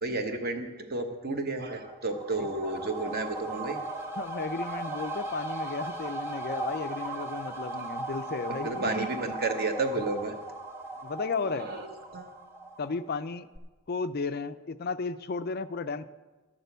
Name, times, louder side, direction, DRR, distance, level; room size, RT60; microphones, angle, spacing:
voice 1, 0.0-3.8 8.5-10.3 11.4-11.9 12.1-12.3, right 2 dB, 45° right, 5 dB, 1.2 m, -32 dB
sound 1, 1.8-13.2 13.5-13.6, right 2 dB, 10° right, 0.8 m, -37 dB
voice 2, 4.2-8.8 11.0-11.7 12.8-13.5 13.9-16.1, left 4 dB, 45° left, 12 dB, 0.4 m, -34 dB
11.5 x 6.7 x 8.1 m, 1.2 s
head